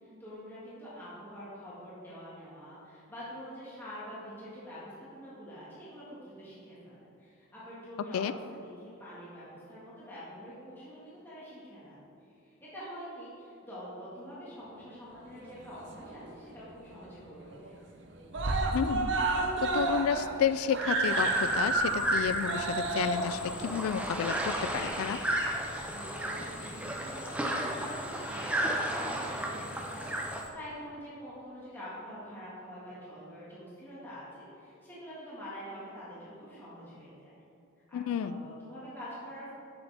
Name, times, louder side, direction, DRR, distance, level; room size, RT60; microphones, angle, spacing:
voice 1, 0.0-12.0 12.3-17.7 25.6-37.3 37.9-39.5, equal, 10° left, -10 dB, 1.7 m, -46 dB
Screaming, 15.4-16.4 16.7-16.8 17.1-17.2 17.5-18.0 18.3-25.1 26.0-26.1, right 2 dB, 55° right, 0.7 m, -31 dB
voice 2, 18.7-19.1 19.6-25.2 37.9-38.5, left 7 dB, 90° left, 13 dB, 0.3 m, -31 dB
sound 1, 21.0-30.5, left 5 dB, 55° left, 0.7 m, -48 dB
sound 2, 21.1-30.4, right 1 dB, 5° right, 0.5 m, -34 dB
7.8 x 7.0 x 3.4 m, 2.7 s
head